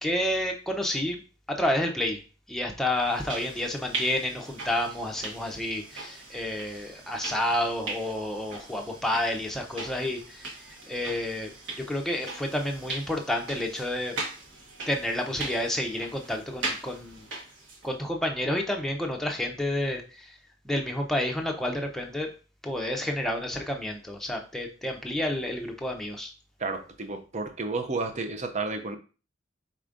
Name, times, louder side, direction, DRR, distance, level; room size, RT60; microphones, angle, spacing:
voice 1, 0.0-1.2 1.5-2.2 2.5-10.5 10.9-11.5 11.9-14.2 14.9-17.2 17.8-20.4 20.6-22.3 22.6-26.3, left 1 dB, ahead, 0.7 m, -30 dB
sound 1, 3.0-17.9, right 3 dB, 70° right, 1.3 m, -40 dB
voice 2, 26.6-29.0, right 3 dB, 35° right, 0.6 m, -31 dB
4.9 x 4.3 x 2.5 m
head